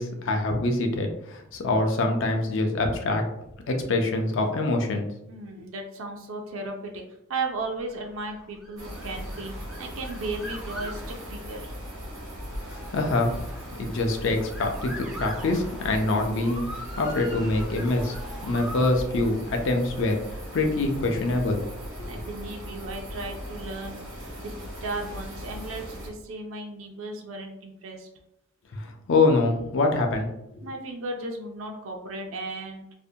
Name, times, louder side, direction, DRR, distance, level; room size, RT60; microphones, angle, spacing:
voice 1, 0.0-3.2 3.7-5.1 12.7-13.4 13.8-18.1 18.4-20.2 20.5-21.6 22.0-22.1 28.7-30.6, left 2 dB, 60° left, 4 dB, 0.4 m, -25 dB
voice 2, 5.3-7.0 7.3-11.7 22.1-24.1 24.4-24.5 24.8-28.1 30.6-32.8, right 2 dB, 70° right, 2 dB, 0.4 m, -35 dB
Motor vehicle (road) / Siren, 7.8-18.9, equal, 5° right, 0.3 m, -42 dB
sound 1, 8.8-26.1, equal, 85° right, 0.9 m, -38 dB
2.5 x 2.1 x 2.6 m, 0.80 s
head